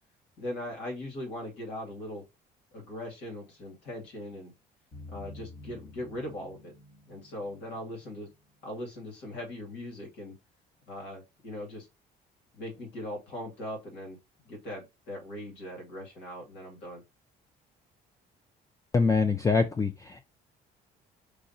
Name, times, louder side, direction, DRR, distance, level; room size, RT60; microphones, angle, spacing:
voice 1, 0.4-2.2 2.7-4.5 5.1-6.7 7.1-8.3 8.6-10.3 10.9-11.9 12.5-14.2 14.4-17.0, left 1 dB, 85° left, 2.2 m, -40 dB
sound 1, 4.9-8.6, left 1 dB, 60° left, 1.9 m, -49 dB
voice 2, 18.9-20.3, left 4 dB, 20° left, 0.4 m, -25 dB
4.8 x 2.5 x 4.2 m
cardioid pair, 110°, 17 cm